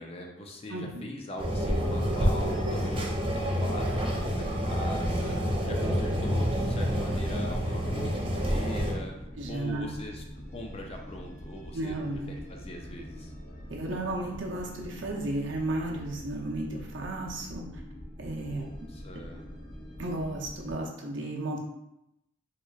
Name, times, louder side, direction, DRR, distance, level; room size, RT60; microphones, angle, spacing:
voice 1, 0.0-9.1 9.5-13.3 18.4-19.4, left 1 dB, 30° left, 1 dB, 0.5 m, -41 dB
voice 2, 0.7-1.0 9.4-9.9 11.7-12.3 13.7-17.6 18.2-18.6 20.0-21.6, right 1 dB, 80° right, -2 dB, 0.7 m, -33 dB
sound 1, 1.4-8.9, equal, 30° right, 0.5 m, -28 dB
sound 2, 5.1-20.7, equal, 55° left, 1.0 m, -44 dB
3.6 x 3.0 x 2.3 m, 0.87 s
head